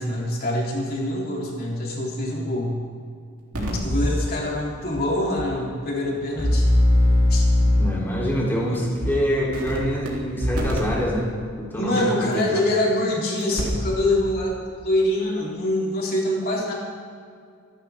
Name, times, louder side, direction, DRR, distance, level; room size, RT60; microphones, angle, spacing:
voice 1, 0.0-2.7 3.8-6.7 7.3-7.5 8.7-8.8 11.7-16.7, left 1 dB, 45° left, -4 dB, 3.8 m, -25 dB
sound 1, 3.5-4.2 4.9-5.0 5.4-5.5 6.4-8.1 9.0-9.1 9.5-10.1 10.4-10.8 12.3-12.4 13.4-13.9 14.2-14.3, left 1 dB, 85° right, 3.5 m, -20 dB
voice 2, 7.7-11.3 11.6-12.6, equal, 10° left, -5 dB, 3.6 m, -26 dB
26.0 x 11.5 x 3.7 m, 2.2 s
head